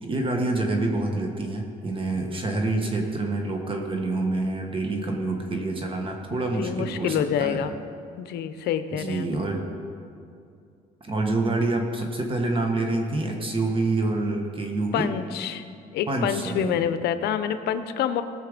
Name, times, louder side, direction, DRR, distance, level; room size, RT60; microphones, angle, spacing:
voice 1, 0.0-7.7 8.9-9.7 11.0-15.1 16.1-16.8, right 2 dB, 30° right, 2 dB, 1.4 m, -27 dB
voice 2, 6.3-7.7 8.2-9.3 14.9-15.6 15.9-18.2, left 9 dB, 75° left, 11 dB, 0.7 m, -27 dB
18.0 x 6.6 x 5.1 m, 2.5 s
cardioid pair, 110°, 17 cm